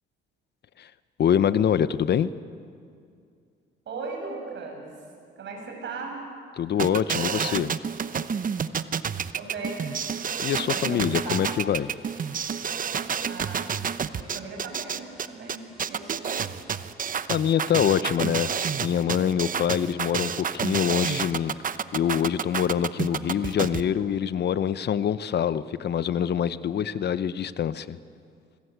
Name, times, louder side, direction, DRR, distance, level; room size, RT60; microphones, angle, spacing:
voice 1, 1.2-2.3 6.6-7.7 10.4-11.9 17.3-18.5 18.8-21.5 21.9-28.0, left 9 dB, 55° left, 15 dB, 0.8 m, -25 dB
voice 2, 3.9-4.9 5.4-6.3 9.3-10.0 10.6-11.5 13.2-13.7 14.1-16.5, right 4 dB, 65° right, 1 dB, 7.7 m, -37 dB
sound 1, 6.8-23.8, right 7 dB, 45° right, 0.9 m, -29 dB
sound 2, 9.9-24.6, equal, ahead, 7.1 m, -55 dB
26.0 x 21.0 x 8.2 m, 2.3 s
cardioid pair, 90°, 20 cm